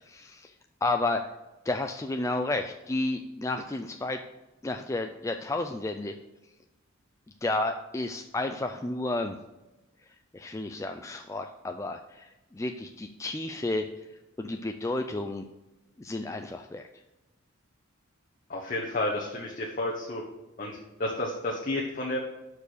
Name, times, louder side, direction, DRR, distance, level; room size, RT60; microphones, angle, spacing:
voice 1, 0.1-0.5 0.8-1.2 1.6-4.2 4.6-6.1 7.4-9.4 10.3-13.9 14.4-15.4 16.0-16.8, left 2 dB, 15° left, 5 dB, 0.3 m, -31 dB
voice 2, 18.5-20.2 20.6-22.2, left 1 dB, 40° left, -2 dB, 1.2 m, -31 dB
12.0 x 4.7 x 6.6 m, 1.0 s
head